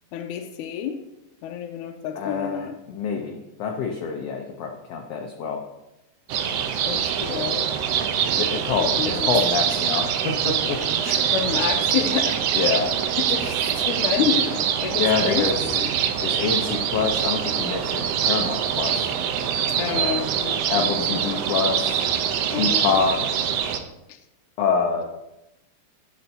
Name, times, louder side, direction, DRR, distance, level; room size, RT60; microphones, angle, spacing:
voice 1, 0.1-1.0 1.4-2.7 6.8-7.8 8.8-9.3 10.8-12.4 13.2-15.9 19.7-21.2 22.5-23.0, left 8 dB, 90° left, 5 dB, 2.1 m, -29 dB
voice 2, 2.1-5.6 8.3-10.8 12.5-12.9 15.0-19.1 19.9-20.2 20.7-22.1 22.5-23.4 24.6-25.0, left 5 dB, 70° left, 2 dB, 1.6 m, -26 dB
sound 1, 6.3-23.8, right 8 dB, 80° right, 1.4 m, -24 dB
12.5 x 8.7 x 2.7 m, 0.92 s
omnidirectional pair, 3.6 m